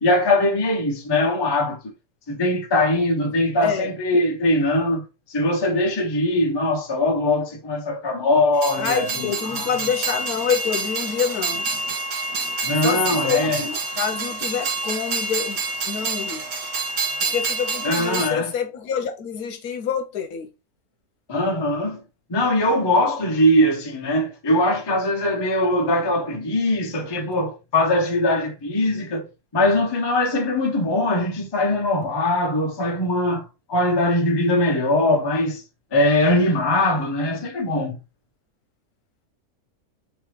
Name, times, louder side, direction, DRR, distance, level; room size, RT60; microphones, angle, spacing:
voice 1, 0.0-1.9 2.3-9.8 12.6-13.6 17.8-18.5 21.3-22.0 22.3-29.3 29.5-35.6 35.9-38.0, left 1 dB, 25° left, 0.6 m, -21 dB
Train, 8.5-18.3, right 3 dB, 70° right, 1.7 m, -27 dB
voice 2, 8.8-11.6 12.8-15.6 15.9-16.4 17.2-20.5, left 7 dB, 75° left, 1.2 m, -27 dB
4.0 x 3.2 x 3.2 m
omnidirectional pair, 1.6 m